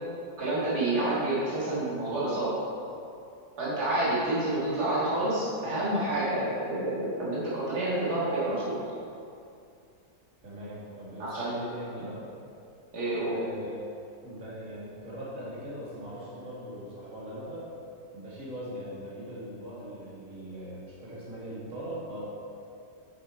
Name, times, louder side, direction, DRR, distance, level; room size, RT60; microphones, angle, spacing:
voice 1, 0.4-2.5 3.6-8.8 11.2-11.7 12.9-13.3, right 1 dB, 85° right, -8 dB, 2.3 m, -28 dB
voice 2, 10.4-12.2 13.2-13.8 14.2-17.6 18.1-22.2, equal, 55° right, -8 dB, 2.3 m, -40 dB
7.0 x 6.8 x 4.4 m, 2.5 s
omnidirectional pair, 1.7 m